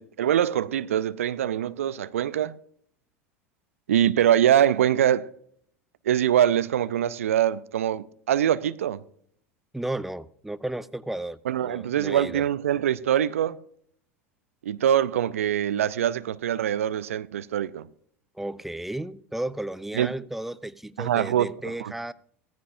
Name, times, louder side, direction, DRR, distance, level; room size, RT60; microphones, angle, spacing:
voice 1, 0.0-2.6 3.9-5.3 6.1-9.0 11.5-13.6 14.6-17.9 20.0-20.1 21.0-21.5 21.8-21.9, right 10 dB, 75° right, 0.5 m, -23 dB
voice 2, 9.7-12.4 18.3-22.1, right 1 dB, 5° right, 0.6 m, -34 dB
16.5 x 14.5 x 2.6 m
figure-of-eight pair, 75°, 7 cm